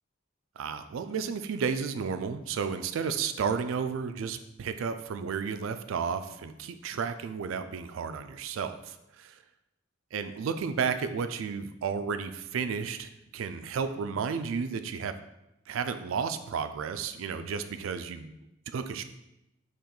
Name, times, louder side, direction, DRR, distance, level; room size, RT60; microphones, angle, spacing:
voice 1, 0.6-9.4 10.1-15.1 15.7-18.3 18.7-19.0, right 6 dB, 75° right, 10 dB, 0.4 m, -32 dB
4.4 x 3.0 x 3.9 m, 0.88 s
head